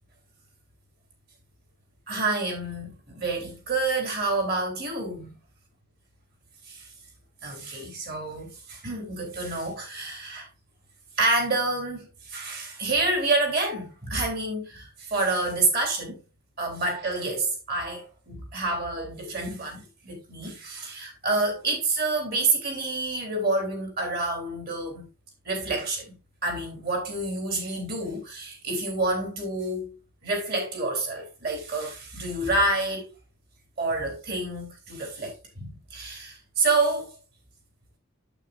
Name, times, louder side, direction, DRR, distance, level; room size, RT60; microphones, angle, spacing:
voice 1, 2.1-5.4 6.7-6.9 7.4-10.5 11.2-16.2 16.6-25.1 25.5-29.9 30.2-33.1 33.8-37.1, right 2 dB, 50° right, 3.5 m, -28 dB
8.9 x 7.7 x 2.6 m
head